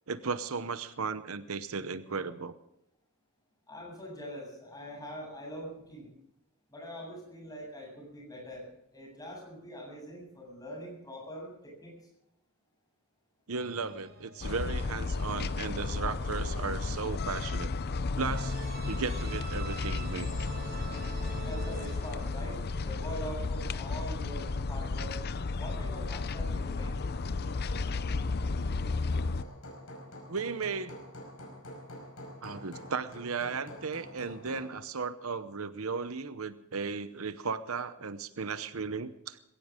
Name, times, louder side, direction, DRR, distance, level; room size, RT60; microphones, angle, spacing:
voice 1, 0.1-2.5 13.5-17.7 18.2-18.6 18.9-20.3 30.3-30.9 32.4-39.4, right 5 dB, 80° right, 13 dB, 0.9 m, -35 dB
voice 2, 3.7-6.1 6.7-11.9 21.4-25.2 25.6-26.9, equal, 20° left, -1 dB, 7.7 m, -43 dB
sound 1, 13.6-15.7 18.3-23.8, right 4 dB, 50° right, 4.6 m, -47 dB
sound 2, 14.4-29.4, left 3 dB, 50° left, 0.6 m, -33 dB
Hammer, 25.1-34.8, left 1 dB, 80° left, 5.1 m, -48 dB
20.5 x 17.0 x 3.7 m, 0.79 s
head